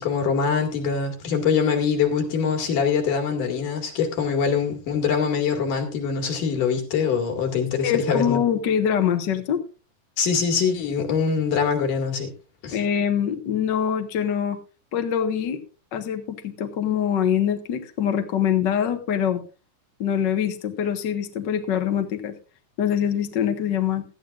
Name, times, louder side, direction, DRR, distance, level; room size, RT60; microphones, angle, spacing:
voice 1, 0.0-8.4 10.2-12.3 12.6-12.8, left 6 dB, 70° left, 3 dB, 3.7 m, -23 dB
voice 2, 7.8-9.6 12.7-14.6 14.9-15.6 15.9-19.4 20.0-22.3 22.8-24.0, left 9 dB, 50° left, 5 dB, 1.4 m, -24 dB
18.0 x 13.0 x 2.5 m, 0.34 s
omnidirectional pair, 3.8 m